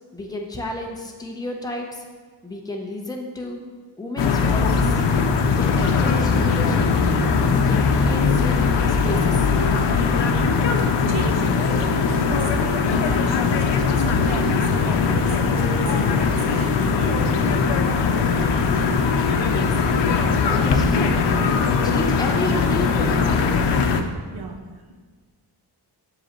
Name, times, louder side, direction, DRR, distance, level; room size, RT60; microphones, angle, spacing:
voice 1, 0.1-2.1 2.4-3.6 4.0-5.0 5.4-6.9 7.5-8.6 8.9-9.5 19.5-19.8 20.2-21.6 21.8-23.4, left 2 dB, 10° left, 0 dB, 0.8 m, -31 dB
sound 1, 4.2-24.0, left 5 dB, 85° left, 0.7 m, -20 dB
voice 2, 10.5-10.8 11.1-13.5 14.0-18.3 24.3-24.9, right 4 dB, 60° right, 3 dB, 0.8 m, -36 dB
7.7 x 7.1 x 3.0 m, 1.5 s
wide cardioid pair, 140°, 42 cm